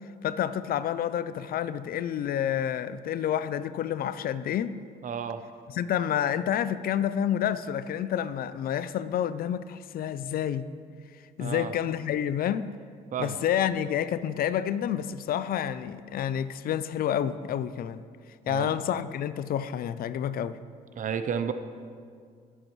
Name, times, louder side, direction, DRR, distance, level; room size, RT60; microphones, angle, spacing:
voice 1, 0.2-4.8 5.7-10.7 11.4-12.7 13.2-18.0 18.5-20.6, left 10 dB, 60° left, 0.5 m, -29 dB
voice 2, 5.0-5.4 11.4-11.7 13.1-13.4 18.5-18.7 21.0-21.5, right 7 dB, 50° right, 0.7 m, -31 dB
19.0 x 7.9 x 3.1 m
cardioid pair, 90°, 17 cm